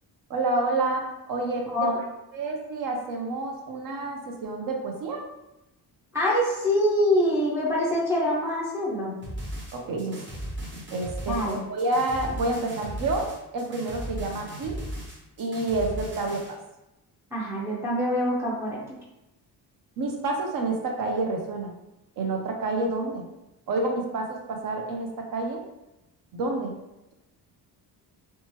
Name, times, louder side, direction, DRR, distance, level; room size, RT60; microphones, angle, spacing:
voice 1, 0.3-1.9 2.3-5.2 9.7-10.2 10.9-13.3 13.5-14.8 15.4-16.6 20.0-21.8 22.2-23.3 23.7-25.6 26.3-26.7, right 2 dB, 55° right, 2 dB, 0.6 m, -29 dB
voice 2, 1.7-2.0 6.1-9.2 11.3-11.6 17.3-18.8, left 1 dB, 5° right, -6 dB, 0.4 m, -25 dB
sound 1, 9.2-16.5, equal, 25° right, 0.8 m, -37 dB
2.8 x 2.2 x 3.0 m, 0.93 s
cardioid pair, 175°, 41 cm